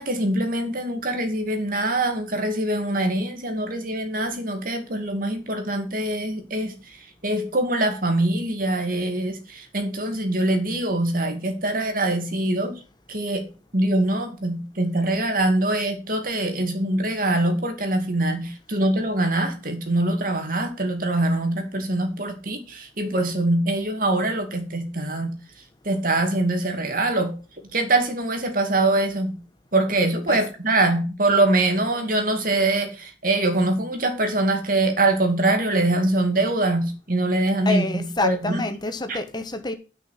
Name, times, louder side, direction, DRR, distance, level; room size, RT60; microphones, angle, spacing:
voice 1, 0.0-12.8 13.1-25.4 25.8-27.3 27.7-29.4 29.7-38.6 39.1-39.2, right 2 dB, 50° right, 2.4 m, -23 dB
voice 2, 37.6-39.7, left 2 dB, 25° left, 1.1 m, -27 dB
9.8 x 5.9 x 5.9 m
head